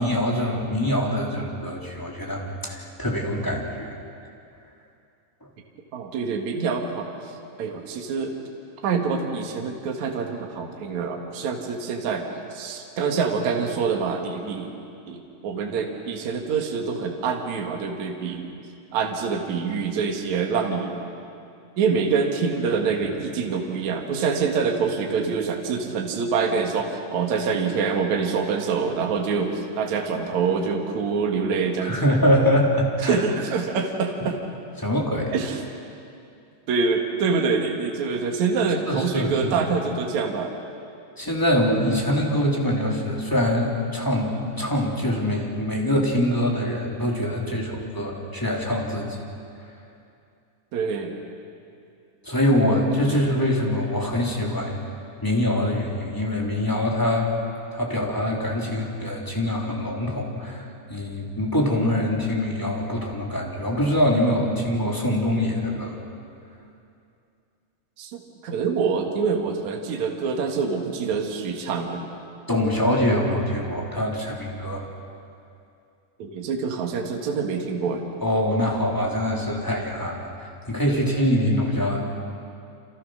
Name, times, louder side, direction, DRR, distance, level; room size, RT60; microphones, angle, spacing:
voice 1, 0.0-3.9 31.8-33.2 34.8-35.3 38.9-39.6 41.2-49.2 52.2-54.8 55.2-57.3 57.7-65.9 72.5-74.8 78.2-82.0, left 1 dB, 5° left, -2 dB, 3.1 m, -24 dB
voice 2, 5.9-7.1 7.6-8.4 8.8-14.7 15.1-18.5 18.9-20.9 21.8-32.1 33.0-34.4 35.3-35.6 36.7-40.5 50.7-51.2 52.8-53.2 68.0-72.1 76.2-78.0, right 5 dB, 60° right, 2 dB, 3.0 m, -26 dB
29.5 x 26.5 x 6.5 m, 2.5 s
omnidirectional pair, 3.9 m